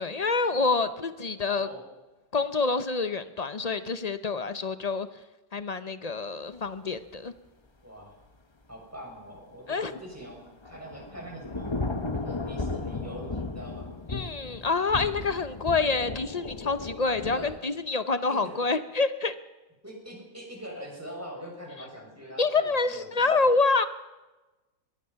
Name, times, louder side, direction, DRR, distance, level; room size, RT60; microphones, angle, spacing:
voice 1, 0.0-1.7 2.3-5.1 5.5-7.3 9.7-9.9 14.1-19.3 22.4-23.8, left 4 dB, 55° left, 11 dB, 0.4 m, -27 dB
voice 2, 7.8-8.2 8.7-11.8 12.2-14.0 17.3-17.5 18.3-18.6 19.8-23.5, equal, 5° right, -1 dB, 6.9 m, -43 dB
Thunder / Rain, 10.2-17.6, left 3 dB, 20° left, 0.7 m, -35 dB
23.0 x 21.5 x 5.8 m, 1.1 s
omnidirectional pair, 2.0 m